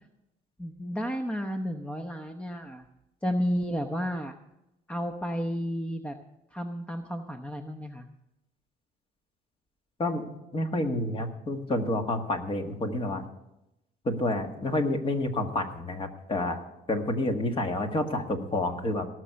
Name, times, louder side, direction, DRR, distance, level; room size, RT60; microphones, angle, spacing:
voice 1, 0.6-2.9 3.2-4.3 4.9-6.1 6.5-8.1, equal, 5° left, 5 dB, 0.8 m, -32 dB
voice 2, 10.0-13.2 14.1-16.6 16.9-19.1, left 1 dB, 30° left, 4 dB, 1.9 m, -29 dB
18.0 x 6.4 x 6.9 m, 0.89 s
cardioid pair, 110°, 17 cm